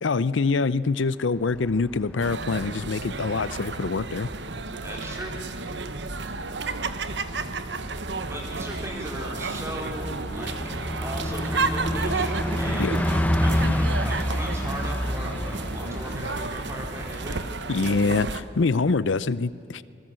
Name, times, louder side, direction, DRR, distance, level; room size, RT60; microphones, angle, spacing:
voice 1, 0.0-4.3 12.8-12.9 17.7-19.8, left 4 dB, 85° left, 17 dB, 0.6 m, -25 dB
Bus, 1.4-18.5, equal, 10° left, 0.7 m, -31 dB
sound 1, 2.2-18.4, right 3 dB, 70° right, 1.1 m, -32 dB
voice 2, 4.8-5.4 8.3-10.5 11.0-17.4, equal, 15° right, 0 dB, 3.9 m, -38 dB
26.5 x 20.0 x 7.7 m, 2.5 s
head